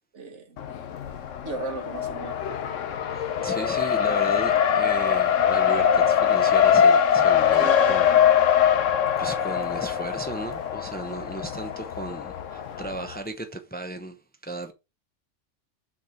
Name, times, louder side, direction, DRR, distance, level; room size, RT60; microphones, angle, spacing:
voice 1, 0.1-0.6 1.4-2.4 7.6-8.2 8.5-8.6, right 3 dB, 70° right, 1.5 m, -35 dB
Race car auto racing, 0.6-13.2, left 8 dB, 90° left, 1.2 m, -22 dB
voice 2, 3.1-8.2 9.2-14.2 14.4-14.7, right 2 dB, 10° left, 0.8 m, -35 dB
6.2 x 4.4 x 5.8 m
omnidirectional pair, 1.3 m